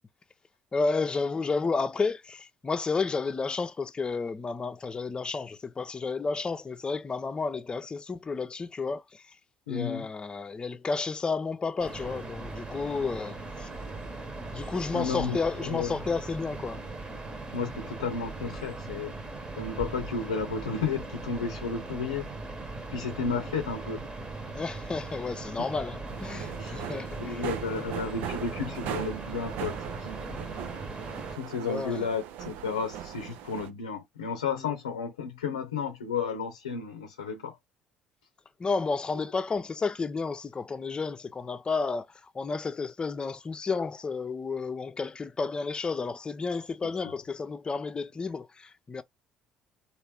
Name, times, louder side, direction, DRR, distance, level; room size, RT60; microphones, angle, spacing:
voice 1, 0.7-9.2 9.7-13.7 14.5-16.8 24.5-27.8 31.7-32.1 38.6-49.0, left 4 dB, 25° left, 0.6 m, -31 dB
voice 2, 9.7-10.1 14.9-16.0 17.5-19.1 19.6-22.3 22.9-24.1 26.6-26.8 27.2-30.4 31.3-37.6, left 5 dB, 85° left, 0.6 m, -33 dB
sound 1, 11.8-31.4, right 3 dB, 25° right, 1.1 m, -39 dB
sound 2, 26.1-33.7, right 10 dB, 60° right, 0.5 m, -39 dB
3.2 x 2.5 x 3.4 m
figure-of-eight pair, 55°, 3 cm